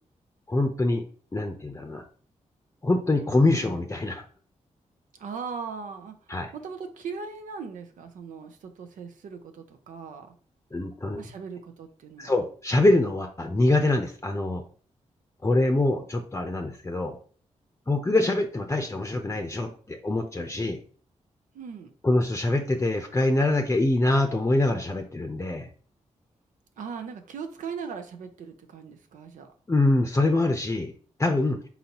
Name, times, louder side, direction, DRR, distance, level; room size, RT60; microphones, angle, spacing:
voice 1, 0.5-1.0 1.3-2.0 2.8-4.2 6.3-6.5 10.7-11.2 12.2-14.6 15.4-17.2 17.9-20.8 22.0-25.7 29.7-30.9 31.2-31.6, left 2 dB, 20° left, 0.6 m, -24 dB
voice 2, 5.1-6.1 6.5-10.3 11.1-12.3 21.5-21.9 26.8-29.5, right 5 dB, 90° right, 0.6 m, -39 dB
4.1 x 4.0 x 2.9 m
cardioid pair, 65°, 13 cm